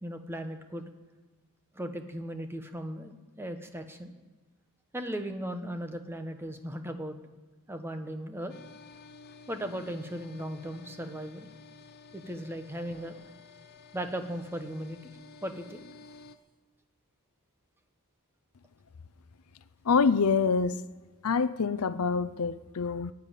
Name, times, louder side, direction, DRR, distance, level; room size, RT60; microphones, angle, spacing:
voice 1, 0.0-0.9 1.7-4.1 4.9-7.2 7.7-8.5 9.5-11.5 12.1-13.1 13.9-15.1 15.4-15.8, right 1 dB, 10° right, 1.0 m, -37 dB
sound 1, 8.5-16.4, left 4 dB, 45° left, 0.8 m, -52 dB
voice 2, 19.8-20.8 21.2-23.1, left 5 dB, 75° left, 0.5 m, -26 dB
15.5 x 7.1 x 10.0 m
head